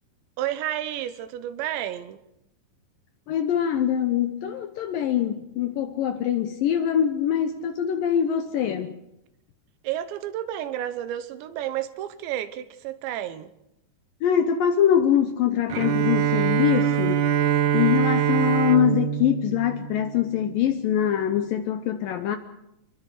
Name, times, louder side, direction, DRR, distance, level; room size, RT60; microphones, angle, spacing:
voice 1, 0.4-2.2 9.8-13.5, right 12 dB, 90° right, 3.4 m, -31 dB
voice 2, 3.3-9.0 14.2-17.3 17.7-22.4, left 9 dB, 75° left, 2.1 m, -23 dB
Bowed string instrument, 15.7-20.6, right 10 dB, 70° right, 1.9 m, -24 dB
26.0 x 22.0 x 4.9 m
omnidirectional pair, 5.0 m